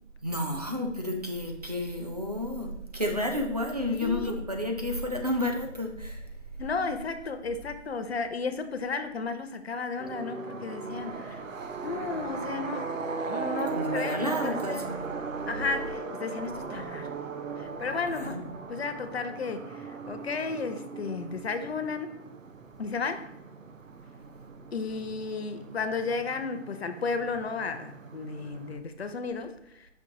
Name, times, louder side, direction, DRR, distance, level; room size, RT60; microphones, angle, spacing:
voice 1, 0.2-6.2 13.7-15.0 18.1-18.4, left 1 dB, 35° right, 2 dB, 0.4 m, -31 dB
voice 2, 3.9-4.4 6.6-11.4 11.8-12.9 13.3-14.8 15.5-17.1 17.6-18.4 18.7-22.2 22.8-23.3 24.7-29.9, left 4 dB, 55° left, 9 dB, 0.5 m, -33 dB
sound 1, 10.0-28.8, right 4 dB, 80° right, 0.6 m, -38 dB
5.4 x 2.5 x 3.7 m, 0.81 s
figure-of-eight pair, 145°, 38 cm